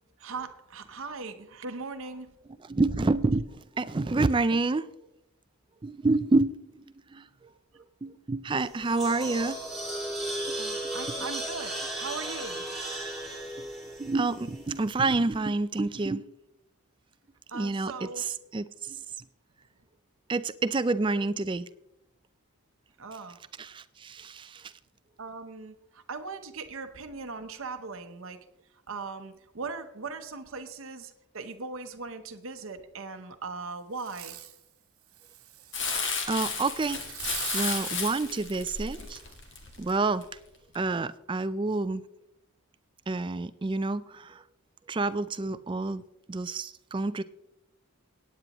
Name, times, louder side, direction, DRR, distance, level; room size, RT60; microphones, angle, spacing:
voice 1, 0.2-2.3 10.6-12.6 17.5-18.3 23.0-23.4 25.2-28.4 28.9-34.4, right 4 dB, 65° right, 7 dB, 0.8 m, -39 dB
voice 2, 2.6-4.9 5.8-6.7 7.1-7.5 7.7-9.6 10.5-10.6 11.2-11.3 14.0-16.2 17.5-19.0 20.3-21.7 23.6-24.7 36.3-37.0 37.5-39.2 39.8-40.3 40.7-42.0 43.1-44.4 44.9-46.0 46.3-47.2, right 3 dB, 20° right, 15 dB, 0.3 m, -28 dB
sound 1, 8.6-14.9, right 1 dB, ahead, 3.5 m, -35 dB
Fireworks, 34.0-34.6 35.1-36.2 37.0-39.3 39.9-40.0, right 13 dB, 80° right, 1.1 m, -42 dB
Crumpling crinkling, 35.7-40.3 40.7-40.8, left 5 dB, 55° left, 1.7 m, -33 dB
17.5 x 9.4 x 3.0 m, 0.85 s
head